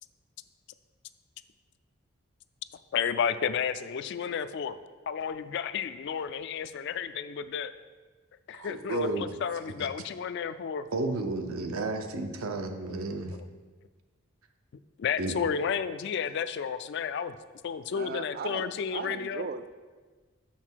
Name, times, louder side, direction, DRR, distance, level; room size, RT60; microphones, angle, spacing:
voice 1, 2.9-4.8 5.1-7.7 8.5-10.8 13.3-13.4 15.0-17.3 17.6-19.4, left 7 dB, 55° left, 0.3 m, -32 dB
voice 2, 8.6-9.3 9.8-9.9 10.9-13.3 15.2-15.3, right 2 dB, 90° right, 0.7 m, -32 dB
voice 3, 17.9-19.7, right 5 dB, 45° right, 0.3 m, -37 dB
6.5 x 5.9 x 4.5 m
head